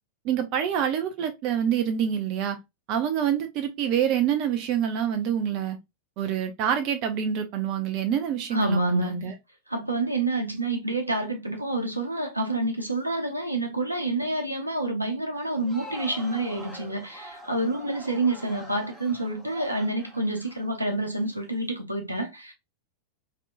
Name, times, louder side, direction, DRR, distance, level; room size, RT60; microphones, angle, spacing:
voice 1, 0.2-2.6 2.9-5.8 6.2-9.3, right 9 dB, 40° right, 0.5 m, -26 dB
voice 2, 8.5-9.2 9.7-22.5, right 2 dB, 85° right, 0.8 m, -28 dB
Crowd, 15.4-21.3, right 1 dB, 5° right, 1.1 m, -44 dB
3.2 x 2.9 x 2.4 m
figure-of-eight pair, 90°, 0 cm